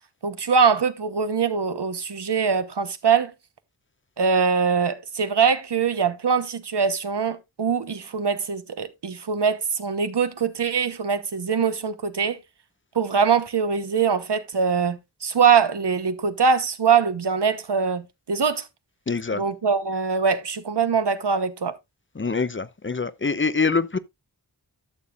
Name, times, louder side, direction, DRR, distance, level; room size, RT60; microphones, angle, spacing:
voice 1, 0.2-3.3 4.2-12.4 12.9-18.7 19.3-21.8, right 6 dB, 75° right, 1.0 m, -23 dB
voice 2, 19.1-19.4 22.2-24.0, left 4 dB, 30° left, 0.6 m, -24 dB
12.5 x 6.9 x 2.4 m
wide cardioid pair, 45°, 42 cm